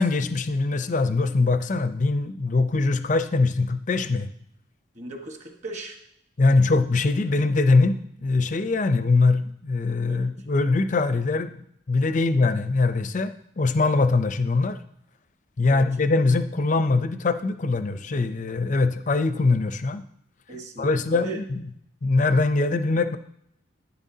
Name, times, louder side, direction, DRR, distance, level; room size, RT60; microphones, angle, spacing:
voice 1, 0.0-4.3 6.4-7.9 8.2-11.6 11.9-14.8 15.6-20.0 20.8-21.6 22.0-23.2, left 3 dB, 35° left, 10 dB, 0.5 m, -22 dB
voice 2, 4.9-6.0 10.1-10.3 12.0-12.1 15.6-15.8 20.5-21.4, right 2 dB, 35° right, 3 dB, 1.2 m, -37 dB
11.0 x 9.7 x 2.8 m, 0.73 s
head